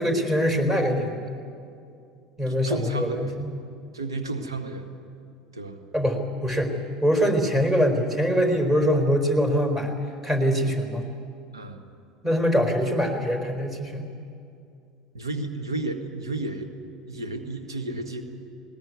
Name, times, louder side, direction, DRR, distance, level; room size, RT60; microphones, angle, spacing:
voice 1, 0.0-1.4 2.4-3.5 5.9-6.7 7.0-9.9 10.2-11.1 12.2-14.0, equal, 20° right, 5 dB, 4.1 m, -23 dB
voice 2, 2.5-3.4 3.9-4.9 5.5-5.8 11.5-11.8 15.1-16.7 17.1-18.2, right 2 dB, 90° right, 6 dB, 1.6 m, -32 dB
20.0 x 18.5 x 9.6 m, 2.5 s
hypercardioid pair, 75°, 2 cm